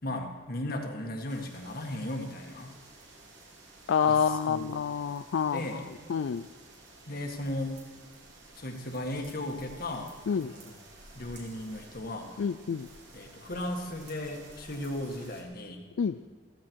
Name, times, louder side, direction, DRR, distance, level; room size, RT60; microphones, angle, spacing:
voice 1, 0.0-2.7 4.0-4.8 5.5-5.9 7.1-7.9 8.6-10.8 11.1-12.3 13.1-15.8, left 1 dB, 55° left, 3 dB, 1.8 m, -36 dB
sound 1, 1.3-15.4, right 2 dB, 85° right, 3.1 m, -53 dB
voice 2, 3.9-5.6 6.1-6.4 10.3-10.5 12.4-12.9 16.0-16.2, left 6 dB, 80° left, 10 dB, 0.4 m, -27 dB
15.0 x 14.5 x 4.7 m, 1.4 s
head